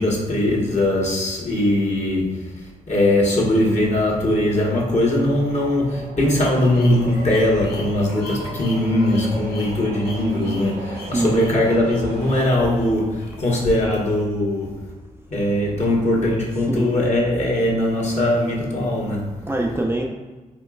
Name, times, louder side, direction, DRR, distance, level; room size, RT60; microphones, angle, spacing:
voice 1, 0.0-14.9 15.3-19.3, left 1 dB, 45° left, -4 dB, 1.4 m, -20 dB
sound 1, 3.4-12.5, right 5 dB, 80° right, 0.4 m, -39 dB
sound 2, 6.4-14.2, left 1 dB, 70° left, 1.1 m, -38 dB
voice 2, 11.1-11.6 16.7-17.0 19.5-20.1, right 2 dB, 15° right, -1 dB, 0.5 m, -23 dB
4.3 x 2.9 x 2.4 m, 1.3 s
supercardioid pair, 45°, 17 cm